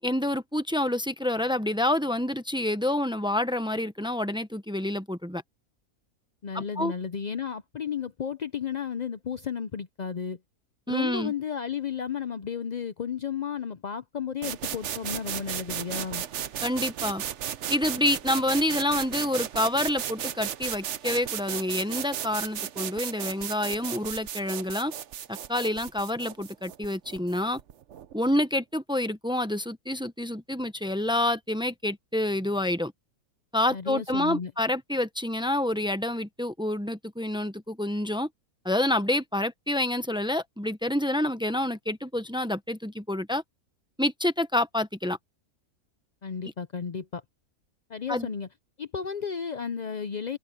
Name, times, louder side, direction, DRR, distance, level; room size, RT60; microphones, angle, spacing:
voice 1, 0.0-5.4 6.5-6.9 10.9-11.3 16.6-17.2 17.7-24.9 25.3-27.6 28.1-32.9 33.5-38.3 38.6-43.4 44.0-45.2 48.1-48.3, left 1 dB, 5° right, 0.7 m, -28 dB
voice 2, 6.4-10.4 10.9-16.2 33.7-34.5 46.2-47.2 47.9-48.5 48.8-50.4, left 7 dB, 90° left, 0.3 m, -33 dB
sound 1, 14.4-28.1, right 9 dB, 55° right, 1.0 m, -35 dB
open air
omnidirectional pair, 1.6 m